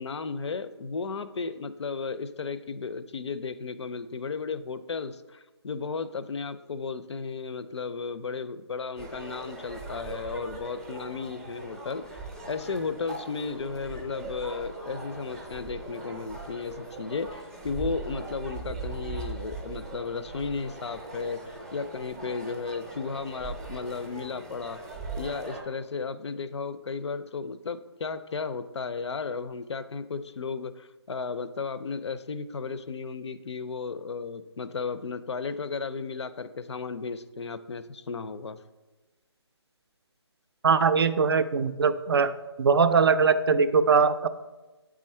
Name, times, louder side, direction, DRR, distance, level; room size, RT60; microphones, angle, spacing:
voice 1, 0.0-12.2 12.5-21.4 21.7-24.8 25.2-38.6, left 4 dB, 75° left, 13 dB, 0.5 m, -34 dB
sound 1, 9.0-25.6, right 2 dB, 10° right, 0.6 m, -40 dB
voice 2, 40.6-42.3 42.6-44.3, right 5 dB, 60° right, 12 dB, 0.4 m, -21 dB
8.2 x 3.7 x 4.3 m, 1.2 s
hypercardioid pair, 170°, 15 cm